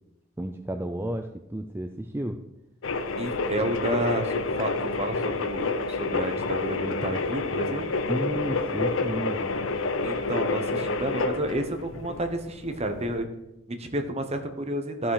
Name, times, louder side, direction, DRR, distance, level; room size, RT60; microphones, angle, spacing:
voice 1, 0.4-2.4 8.1-9.5, right 1 dB, 10° right, 5 dB, 0.4 m, -32 dB
sound 1, 2.8-13.2, left 3 dB, 80° left, 0.7 m, -29 dB
voice 2, 3.2-7.9 10.0-13.3 13.7-15.1, right 1 dB, 35° right, 6 dB, 1.1 m, -30 dB
13.5 x 5.9 x 4.9 m, 0.91 s
head